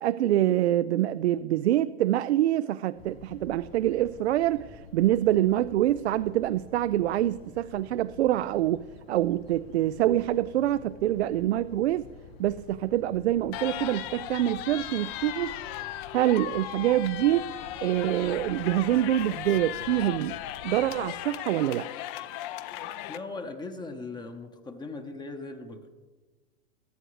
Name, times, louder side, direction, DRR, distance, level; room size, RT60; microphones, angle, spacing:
voice 1, 0.0-12.1 12.4-15.6 16.1-17.5 17.8-20.4 20.6-21.9, right 13 dB, 75° right, 14 dB, 0.5 m, -25 dB
sound 1, 3.0-21.1, left 5 dB, 65° left, 2.0 m, -50 dB
sound 2, 13.5-23.2, left 13 dB, 35° left, 0.6 m, -37 dB
voice 2, 23.1-25.9, left 3 dB, 15° left, 6 dB, 0.9 m, -39 dB
22.0 x 9.0 x 3.2 m, 1.3 s
hypercardioid pair, 125°, 33 cm